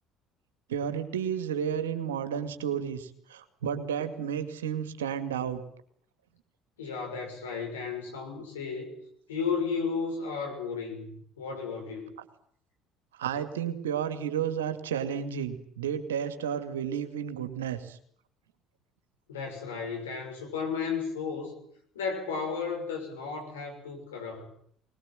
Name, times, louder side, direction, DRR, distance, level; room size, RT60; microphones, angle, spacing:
voice 1, 0.7-5.6 13.1-18.0, right 8 dB, 80° right, 9 dB, 2.2 m, -32 dB
voice 2, 6.8-9.0 9.3-12.1 19.3-21.6 21.9-24.5, left 5 dB, 80° left, 2 dB, 6.4 m, -34 dB
21.5 x 21.0 x 9.0 m, 0.63 s
hypercardioid pair, 60°, 0 cm